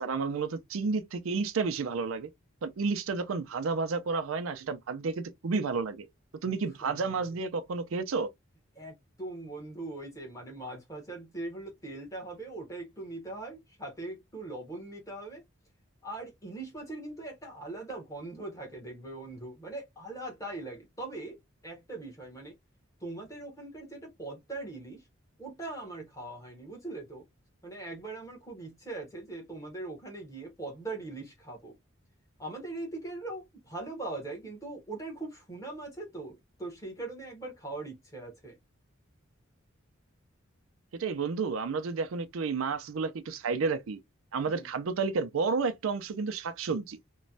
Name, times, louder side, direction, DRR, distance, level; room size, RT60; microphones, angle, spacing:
voice 1, 0.0-2.3 2.6-6.1 6.4-8.3 40.9-44.0 44.3-47.0, right 4 dB, 80° right, 0.5 m, -31 dB
voice 2, 6.8-7.2 8.7-15.4 16.0-21.4 21.6-22.6 23.0-25.0 25.4-27.2 27.6-31.7 32.4-38.6 44.5-44.7, right 2 dB, 15° left, 1.1 m, -41 dB
3.0 x 2.2 x 2.6 m
head